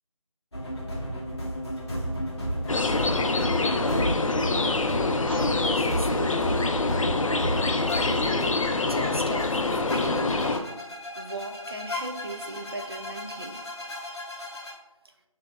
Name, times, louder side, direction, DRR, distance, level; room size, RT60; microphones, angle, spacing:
sound 1, 0.5-14.7, equal, 50° left, 0.9 m, -33 dB
sound 2, 2.7-10.6, left 3 dB, 70° left, 0.4 m, -25 dB
voice 1, 3.5-4.2 4.7-4.9 5.3-6.8 7.6-10.7 11.2-13.7 15.0-15.1, right 1 dB, 45° right, 4 dB, 0.4 m, -38 dB
6.5 x 2.8 x 2.3 m, 0.96 s
figure-of-eight pair, 175°, 18 cm